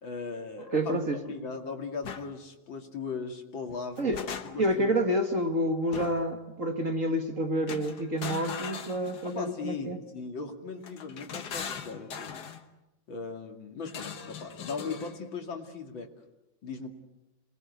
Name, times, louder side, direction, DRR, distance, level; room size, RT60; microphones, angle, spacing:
voice 1, 0.0-4.1 4.4-4.9 9.2-12.4 13.1-16.1 16.6-16.9, left 4 dB, 75° left, 3 dB, 3.2 m, -38 dB
voice 2, 0.7-1.2 4.0-4.2 4.6-10.0, right 1 dB, 40° right, 5 dB, 2.0 m, -28 dB
sound 1, 2.0-2.3 3.7-4.8 5.9-6.4 7.7-9.5 10.8-12.6 13.9-15.2, left 7 dB, 55° left, 1.8 m, -40 dB
27.5 x 20.5 x 8.2 m, 0.96 s
omnidirectional pair, 2.2 m